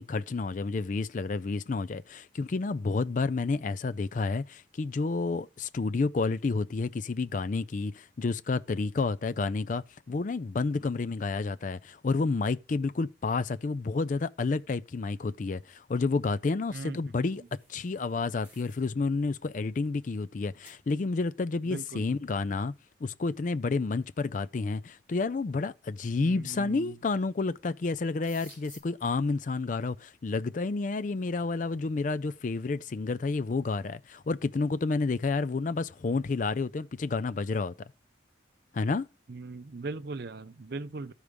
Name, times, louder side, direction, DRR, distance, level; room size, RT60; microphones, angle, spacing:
voice 1, 0.0-17.4 17.7-22.7 23.0-37.7 38.7-39.1, left 3 dB, 45° left, 0.4 m, -30 dB
sound 1, 17.3-18.9 19.2-19.5 20.1-20.2 20.6-20.8 23.1-23.2 24.2-24.3 25.0-25.4 26.7-27.1 27.4-27.6 27.9-28.8, right 1 dB, 10° right, 4.3 m, -55 dB
voice 2, 21.7-22.0 26.2-26.9 39.3-41.1, right 3 dB, 55° right, 0.5 m, -39 dB
12.5 x 4.8 x 5.1 m
head